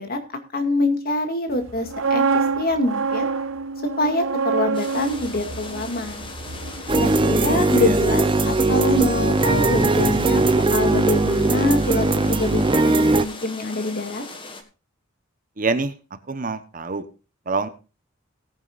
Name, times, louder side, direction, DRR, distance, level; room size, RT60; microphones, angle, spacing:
voice 1, 0.0-3.3 4.0-6.3 6.9-14.2, left 1 dB, 45° left, 7 dB, 2.1 m, -25 dB
sound 1, 1.7-7.6 7.9-8.1, right 5 dB, 75° right, 1.2 m, -27 dB
sound 2, 4.7-14.6, left 3 dB, 25° left, 1.6 m, -39 dB
sound 3, 6.9-13.2, right 2 dB, 25° right, 0.6 m, -19 dB
voice 2, 7.4-8.0 15.6-15.9 16.3-17.0 17.5-17.7, right 3 dB, 40° right, 11 dB, 1.0 m, -26 dB
18.5 x 9.6 x 2.5 m, 0.31 s
head